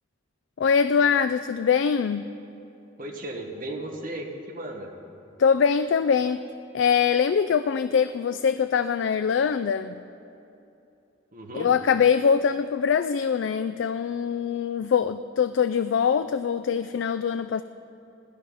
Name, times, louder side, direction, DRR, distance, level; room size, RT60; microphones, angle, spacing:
voice 1, 0.6-2.2 5.4-6.4 6.7-10.0 11.5-17.6, left 6 dB, 70° left, 11 dB, 0.3 m, -23 dB
voice 2, 3.0-4.9 11.3-11.7, right 1 dB, 45° right, 2 dB, 1.4 m, -35 dB
15.0 x 11.0 x 5.6 m, 2.8 s
head